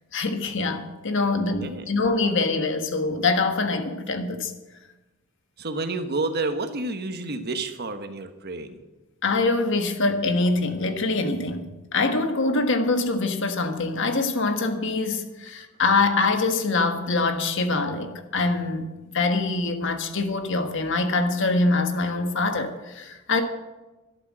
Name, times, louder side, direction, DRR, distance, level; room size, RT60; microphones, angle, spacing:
voice 1, 0.1-4.5 9.2-23.4, left 3 dB, 65° left, 1.5 m, -24 dB
voice 2, 1.3-1.9 5.6-8.8, right 3 dB, 50° right, 1.3 m, -30 dB
12.5 x 11.5 x 6.3 m
head